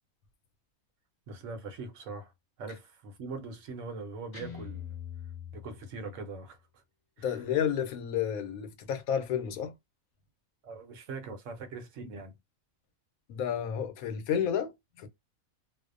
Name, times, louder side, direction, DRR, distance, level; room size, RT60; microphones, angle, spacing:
voice 1, 1.3-2.3 2.6-5.0 5.5-6.8 7.2-7.4 10.6-12.4, right 3 dB, 70° right, 0.9 m, -42 dB
Guitar, 4.3-6.4, left 9 dB, 35° left, 0.9 m, -43 dB
voice 2, 7.2-9.7 13.3-15.1, left 8 dB, 85° left, 1.1 m, -31 dB
2.6 x 2.0 x 2.4 m
omnidirectional pair, 1.5 m